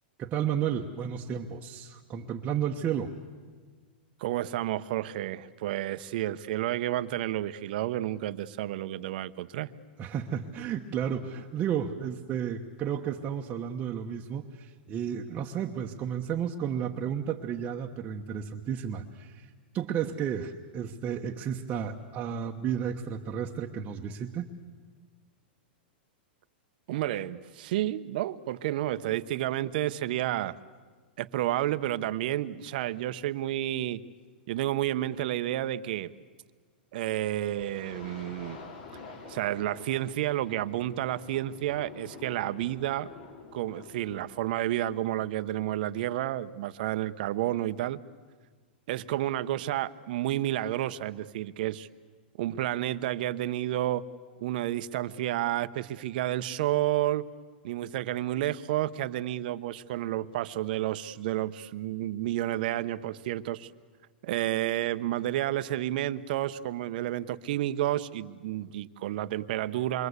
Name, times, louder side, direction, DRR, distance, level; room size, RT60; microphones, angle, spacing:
voice 1, 0.2-3.1 10.0-24.5, right 8 dB, 25° right, 1 dB, 1.1 m, -32 dB
voice 2, 4.2-9.7 26.9-30.6 31.2-34.0 34.5-36.1 36.9-38.6 39.3-43.1 43.5-48.0 48.9-51.9 52.4-54.0 54.4-57.3 57.6-63.7 64.2-70.1, right 13 dB, 60° right, 12 dB, 1.0 m, -30 dB
sound 1, 37.6-44.5, left 4 dB, 60° left, 4.4 m, -48 dB
27.5 x 24.0 x 8.2 m, 1.5 s
hypercardioid pair, 145°, 6 cm